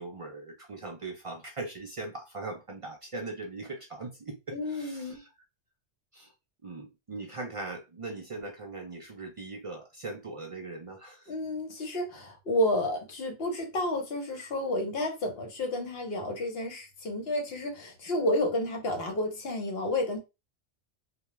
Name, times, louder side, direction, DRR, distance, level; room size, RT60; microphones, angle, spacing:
voice 1, 0.0-5.3 6.1-6.3 6.6-11.3, right 3 dB, 65° right, 0.3 m, -40 dB
voice 2, 4.5-5.2 11.3-20.2, left 1 dB, 65° left, 1.0 m, -31 dB
2.2 x 2.2 x 3.0 m
omnidirectional pair, 1.1 m